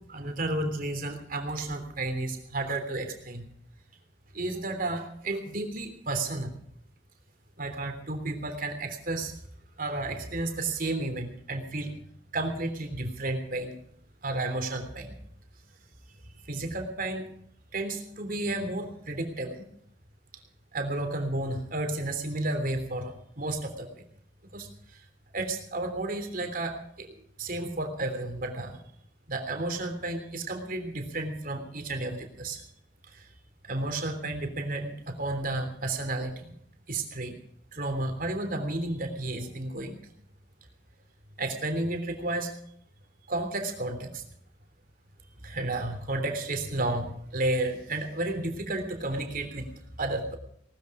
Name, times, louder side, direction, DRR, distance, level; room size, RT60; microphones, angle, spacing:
voice 1, 0.1-3.5 4.3-6.6 7.6-9.3 9.8-11.9 12.3-13.8 14.2-15.1 16.5-17.3 17.7-19.6 20.7-23.9 24.5-24.7 25.3-28.8 29.3-32.6 33.1-33.2 33.6-36.5 36.9-37.3 37.7-39.9 41.4-42.5 43.3-44.2 45.4-49.7 50.0-50.4, right 2 dB, 50° right, 5 dB, 3.2 m, -32 dB
19.0 x 13.0 x 4.9 m, 0.69 s
head